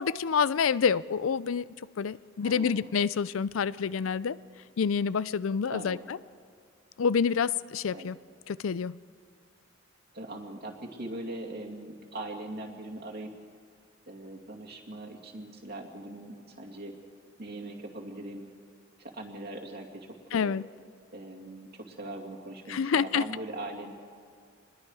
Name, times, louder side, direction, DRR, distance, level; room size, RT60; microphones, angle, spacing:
voice 1, 0.0-1.7 2.0-4.4 4.8-6.2 7.0-8.2 8.5-8.9 20.3-20.6 22.7-23.2, left 6 dB, 85° left, 0.5 m, -27 dB
voice 2, 2.4-3.0 5.7-6.0 7.9-8.2 10.1-13.3 14.1-17.0 17.4-18.5 19.0-20.6 21.1-23.9, right 1 dB, 50° right, 2.5 m, -41 dB
26.5 x 21.0 x 4.9 m
head